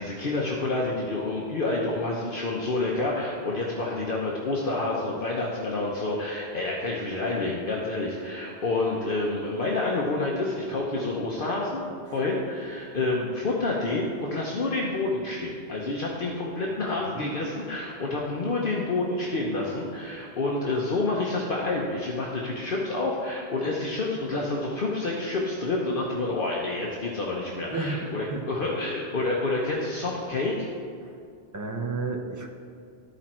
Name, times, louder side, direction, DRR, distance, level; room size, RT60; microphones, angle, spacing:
voice 1, 0.0-30.7, left 2 dB, 55° left, -3 dB, 1.0 m, -28 dB
voice 2, 27.7-28.4 31.0-31.2 31.5-32.5, right 3 dB, 20° right, 2 dB, 0.6 m, -32 dB
12.5 x 4.4 x 4.3 m, 2.4 s
omnidirectional pair, 1.2 m